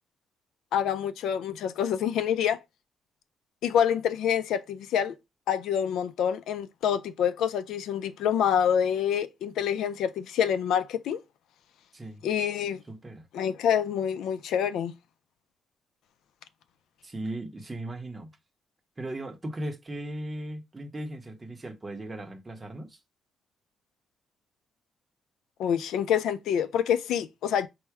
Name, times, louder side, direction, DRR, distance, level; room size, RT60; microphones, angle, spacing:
voice 1, 0.7-2.6 3.6-5.1 5.5-11.2 12.2-12.8 13.3-14.9 25.6-27.7, left 8 dB, 85° left, 0.3 m, -27 dB
voice 2, 12.9-13.3 17.0-18.3 19.0-23.0, right 1 dB, 20° right, 0.7 m, -37 dB
4.6 x 2.1 x 4.4 m
cardioid pair, 125°, 0 cm